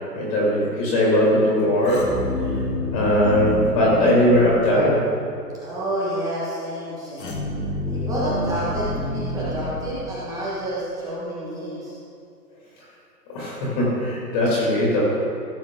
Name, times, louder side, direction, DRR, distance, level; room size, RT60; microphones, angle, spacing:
voice 1, 0.1-2.1 2.9-5.0 13.3-15.1, left 1 dB, 25° left, -6 dB, 2.6 m, -19 dB
sound 1, 1.8-5.2 7.2-10.5, left 1 dB, 80° left, 2.7 m, -28 dB
voice 2, 5.6-7.5 7.9-12.0, right 1 dB, 5° right, -8 dB, 1.3 m, -29 dB
16.5 x 7.3 x 3.8 m, 2.4 s
hypercardioid pair, 150°, 49 cm